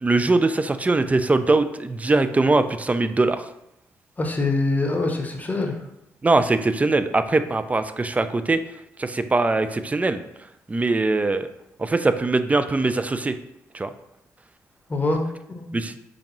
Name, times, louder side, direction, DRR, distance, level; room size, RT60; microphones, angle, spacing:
voice 1, 0.0-3.5 6.2-8.6 9.0-10.2 10.7-11.5 11.8-13.4 13.7-13.9 15.7-15.9, right 3 dB, 20° right, 11 dB, 0.4 m, -21 dB
voice 2, 4.2-5.8 14.9-15.2 15.5-15.7, left 2 dB, 20° left, 2 dB, 0.8 m, -24 dB
5.0 x 2.6 x 3.0 m, 0.82 s
hypercardioid pair, 45°, 7 cm